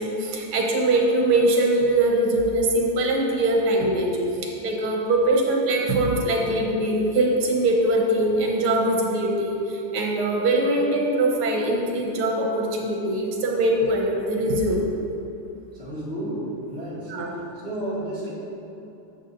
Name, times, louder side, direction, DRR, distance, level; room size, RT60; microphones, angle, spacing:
voice 1, 0.0-4.1 4.6-14.9 17.1-17.4, right 1 dB, 70° right, -1 dB, 1.9 m, -22 dB
voice 2, 15.7-17.1 17.6-18.3, right 1 dB, 25° left, -11 dB, 1.5 m, -31 dB
10.5 x 7.3 x 2.6 m, 2.9 s
omnidirectional pair, 2.4 m